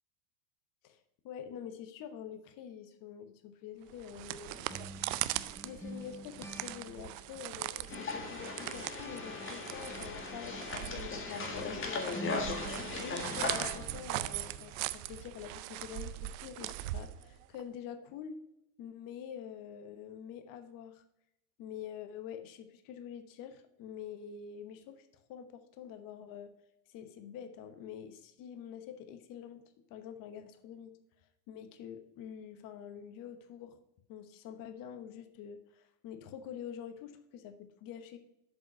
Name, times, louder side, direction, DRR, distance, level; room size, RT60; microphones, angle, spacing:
voice 1, 0.8-4.9 5.2-5.3 5.6-11.2 11.6-12.6 13.0-18.4 18.8-21.0 21.6-26.5 26.9-29.6 29.9-31.0 31.5-33.8 34.1-38.2, left 8 dB, 45° left, 8 dB, 1.1 m, -46 dB
sound 1, 3.9-17.6, right 16 dB, 55° right, 0.5 m, -40 dB
sound 2, 4.7-8.2 8.4-14.8, left 1 dB, 5° left, 1.0 m, -50 dB
sound 3, 7.9-13.7, left 3 dB, 25° left, 1.7 m, -38 dB
7.6 x 5.5 x 5.4 m, 0.82 s
hypercardioid pair, 95°, 47 cm